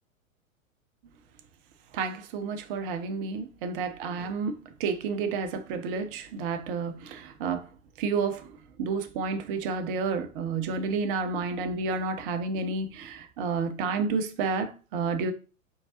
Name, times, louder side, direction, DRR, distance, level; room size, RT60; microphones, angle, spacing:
voice 1, 1.9-7.6 8.0-8.5 8.8-15.3, right 4 dB, 40° right, 0.8 m, -30 dB
4.5 x 3.6 x 2.8 m
figure-of-eight pair, 105°, 41 cm